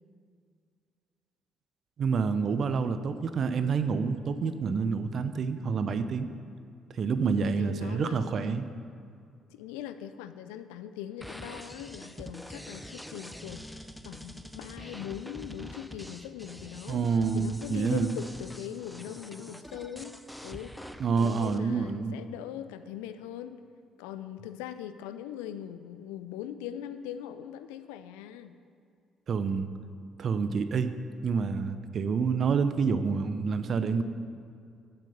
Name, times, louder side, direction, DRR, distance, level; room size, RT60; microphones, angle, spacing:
voice 1, 2.0-6.3 6.9-8.7 16.9-18.1 21.0-22.2 29.3-29.7 30.2-30.9 31.2-34.0, right 5 dB, 50° right, 11 dB, 0.6 m, -28 dB
voice 2, 7.2-8.4 9.5-17.0 17.3-20.2 20.4-20.7 21.2-23.7 24.0-28.5, left 10 dB, 75° left, 11 dB, 0.4 m, -41 dB
sound 1, 11.2-21.6, equal, 5° left, 0.5 m, -45 dB
7.9 x 7.3 x 6.7 m, 2.4 s
hypercardioid pair, 45°, 0 cm